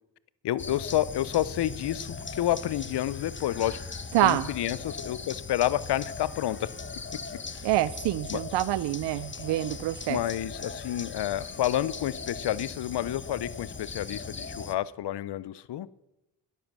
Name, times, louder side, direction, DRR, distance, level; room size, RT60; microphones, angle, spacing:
voice 1, 0.4-3.8 4.2-6.7 7.5-7.7 8.3-8.4 10.1-15.9, left 13 dB, 65° left, 19 dB, 0.7 m, -29 dB
sound 1, 0.6-14.8, left 4 dB, 25° left, 1.0 m, -39 dB
voice 2, 4.1-4.5 7.6-10.2, right 15 dB, 75° right, 17 dB, 0.5 m, -26 dB
13.0 x 10.5 x 6.2 m, 0.94 s
supercardioid pair, 45°, 43 cm